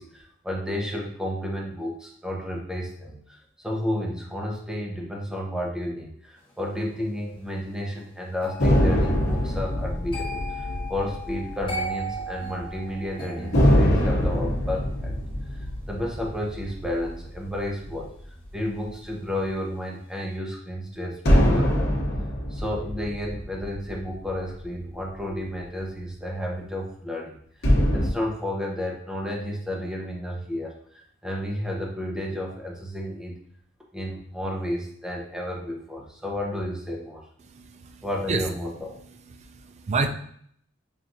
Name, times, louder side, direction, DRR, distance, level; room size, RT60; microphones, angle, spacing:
voice 1, 0.0-15.2 15.5-18.1 18.5-21.9 22.5-33.4 33.9-37.2 38.0-38.9, left 1 dB, 5° right, -1 dB, 0.7 m, -32 dB
sound 1, 8.4-19.4 19.7-20.0, equal, 25° left, 1.1 m, -39 dB
sound 2, 8.6-12.3 12.6-12.7 13.5-18.2 21.3-24.9 27.6-28.1, equal, 60° left, 0.9 m, -24 dB
voice 2, 37.5-38.5 39.4-40.1, right 4 dB, 35° right, 7 dB, 0.3 m, -29 dB
5.7 x 2.5 x 2.6 m, 0.64 s
head